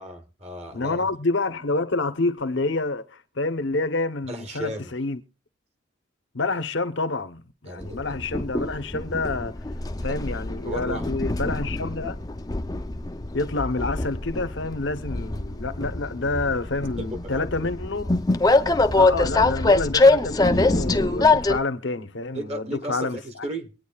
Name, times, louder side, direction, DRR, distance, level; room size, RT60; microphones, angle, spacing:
voice 1, 0.0-1.1 4.3-4.9 7.7-8.0 9.9-10.2 10.6-11.1 17.0-17.7 22.3-23.7, right 1 dB, 30° right, 1.2 m, -35 dB
voice 2, 0.7-5.2 6.3-9.6 10.0-12.2 13.3-18.1 18.9-23.2, left 3 dB, 65° left, 0.9 m, -28 dB
Train, 7.8-21.6, left 2 dB, 20° left, 0.5 m, -23 dB
23.5 x 9.3 x 2.3 m
head